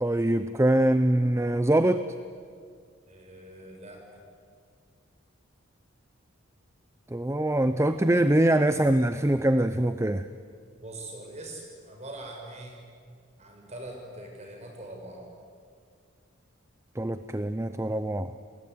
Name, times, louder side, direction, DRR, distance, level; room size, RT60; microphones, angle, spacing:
voice 1, 0.0-2.0 7.1-10.3 17.0-18.3, right 1 dB, 15° right, 11 dB, 0.6 m, -23 dB
voice 2, 3.1-4.0 10.8-12.8 13.4-15.3, right 1 dB, 35° right, 2 dB, 6.2 m, -42 dB
29.5 x 19.5 x 9.4 m, 2.2 s
head